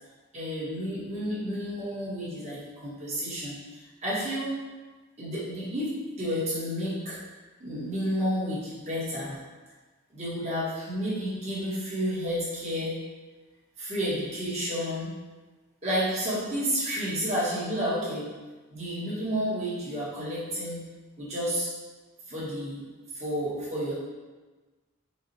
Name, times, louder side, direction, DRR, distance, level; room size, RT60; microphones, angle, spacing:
voice 1, 0.3-4.6 5.2-7.2 7.6-9.4 10.1-13.0 13.8-15.2 15.8-18.3 18.7-20.8 21.2-21.7 22.3-22.8 23.1-23.9, equal, 30° right, -9 dB, 1.4 m, -31 dB
4.8 x 2.5 x 4.1 m, 1.3 s
head